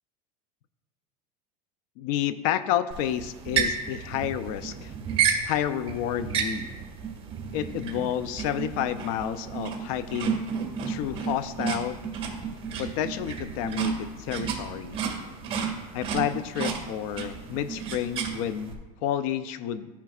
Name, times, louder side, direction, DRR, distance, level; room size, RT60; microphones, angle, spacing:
voice 1, 2.0-4.9 5.5-6.8 7.5-10.4 10.9-12.0 12.8-15.0 15.9-19.9, left 10 dB, 65° left, 13 dB, 0.5 m, -30 dB
sound 1, 2.9-18.7, right 6 dB, 30° right, 1.8 m, -32 dB
13.0 x 5.8 x 2.4 m, 1.2 s
supercardioid pair, 135°, 19 cm